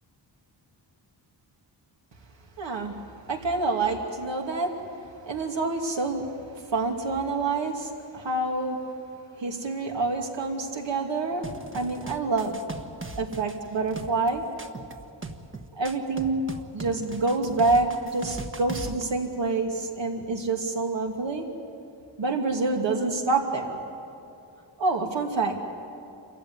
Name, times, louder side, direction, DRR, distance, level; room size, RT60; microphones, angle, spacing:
voice 1, 2.6-3.0 3.3-4.7 5.2-6.2 6.7-8.8 9.4-11.4 11.7-12.6 13.2-14.4 15.7-16.4 16.7-21.4 22.2-23.8 24.8-25.6, right 3 dB, 70° right, 2 dB, 2.7 m, -27 dB
sound 1, 11.4-19.0, right 3 dB, 25° right, 1.3 m, -39 dB
27.5 x 15.5 x 9.6 m, 2.6 s
wide cardioid pair, 115°, 45 cm